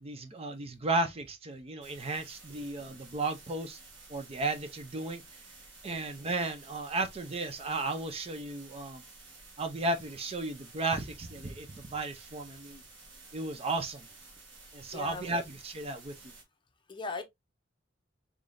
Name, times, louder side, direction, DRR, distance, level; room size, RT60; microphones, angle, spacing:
voice 1, 0.0-3.8 4.1-5.2 5.8-9.0 9.6-12.8 13.3-14.1 14.7-16.3, right 2 dB, 30° right, 0.5 m, -34 dB
sound 1, 1.8-16.4, right 3 dB, 70° right, 1.6 m, -53 dB
voice 2, 14.9-15.3 16.9-17.2, left 4 dB, 25° left, 0.6 m, -38 dB
3.7 x 3.5 x 2.5 m
head